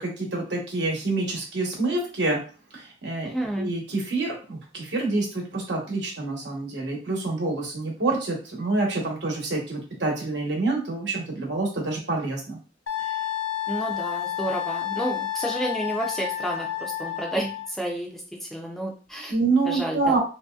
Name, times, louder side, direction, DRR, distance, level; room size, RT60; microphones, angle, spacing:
voice 1, 0.0-2.4 2.7-12.6 13.0-13.1 19.3-20.2, right 3 dB, 70° right, 0 dB, 1.0 m, -27 dB
voice 2, 3.2-3.7 13.7-19.3 19.6-20.1, right 1 dB, ahead, -1 dB, 0.4 m, -30 dB
Wind instrument woodwind instrument, 12.9-17.7, left 11 dB, 80° left, 0.4 m, -30 dB
3.0 x 2.6 x 2.3 m, 0.36 s
head